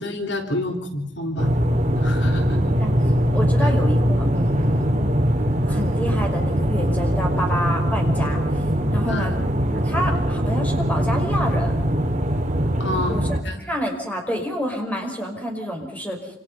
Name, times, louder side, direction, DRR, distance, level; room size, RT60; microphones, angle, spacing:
voice 1, 0.0-1.5 2.0-2.6 3.6-3.7 9.1-9.3 12.8-13.6, left 1 dB, 65° left, 3 dB, 3.5 m, -29 dB
sound 1, 1.4-13.4, equal, 40° right, 3.0 m, -21 dB
voice 2, 3.3-4.9 5.7-8.4 8.9-9.3 9.7-11.8 13.1-13.3 13.6-16.3, equal, 10° left, 2 dB, 5.8 m, -28 dB
28.5 x 27.5 x 5.7 m, 0.71 s
head